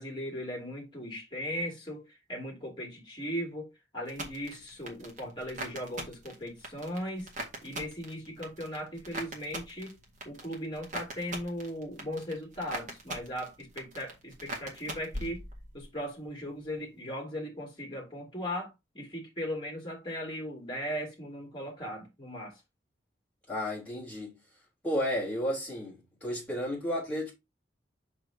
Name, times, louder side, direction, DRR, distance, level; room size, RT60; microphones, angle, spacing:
voice 1, 0.0-7.3 7.6-10.0 10.2-15.4 15.7-18.7 18.9-22.6, equal, 25° left, 2.8 m, -38 dB
sound 1, 4.1-16.0 16.3-16.9, right 1 dB, 40° right, 1.8 m, -42 dB
voice 2, 23.5-24.4 24.8-27.3, equal, 5° left, 3.7 m, -32 dB
6.6 x 6.0 x 2.9 m
head